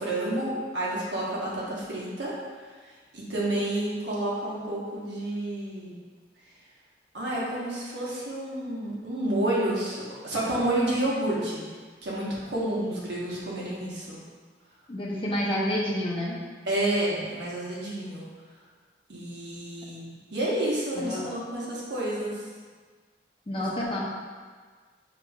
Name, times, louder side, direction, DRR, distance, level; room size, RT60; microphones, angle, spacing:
voice 1, 0.0-2.3 2.8-2.9 3.1-5.9 7.1-11.6 12.0-14.2 16.7-18.3 19.1-22.5, right 1 dB, 75° right, -6 dB, 1.2 m, -30 dB
voice 2, 14.9-16.4 21.0-21.3 23.5-24.0, left 1 dB, 30° left, -4 dB, 0.6 m, -29 dB
6.8 x 3.0 x 2.3 m, 1.5 s
head